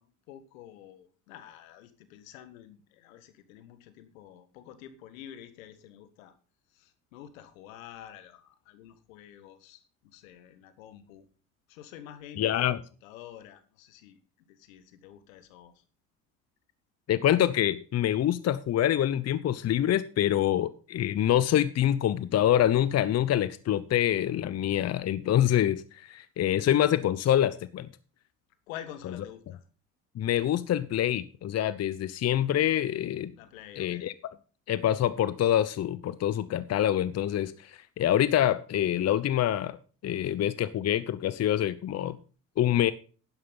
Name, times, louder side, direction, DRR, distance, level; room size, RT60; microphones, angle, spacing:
voice 1, 0.0-6.3 6.7-9.8 10.1-11.3 11.7-12.7 13.0-14.2 14.5-15.8 28.7-29.6 33.4-34.1, left 11 dB, 75° left, 12 dB, 1.7 m, -48 dB
voice 2, 12.4-12.8 17.1-27.9 30.2-33.3 33.8-34.1 34.7-39.8 40.0-42.2 42.6-42.9, left 11 dB, 40° left, 15 dB, 0.8 m, -26 dB
11.0 x 11.0 x 4.0 m, 0.38 s
hypercardioid pair, 65°, 41 cm